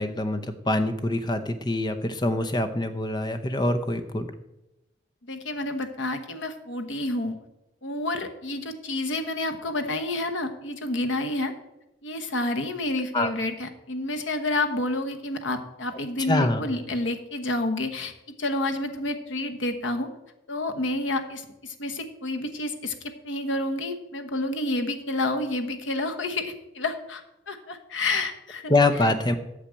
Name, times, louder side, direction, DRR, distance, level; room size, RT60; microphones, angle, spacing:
voice 1, 0.0-4.3 13.1-13.3 16.3-16.6 28.7-29.3, left 2 dB, 20° left, 8 dB, 0.7 m, -24 dB
voice 2, 5.2-7.4 7.8-11.5 12.0-18.1 18.4-20.1 20.5-28.6, left 2 dB, 80° left, 6 dB, 1.1 m, -29 dB
8.5 x 6.5 x 7.4 m, 0.92 s
head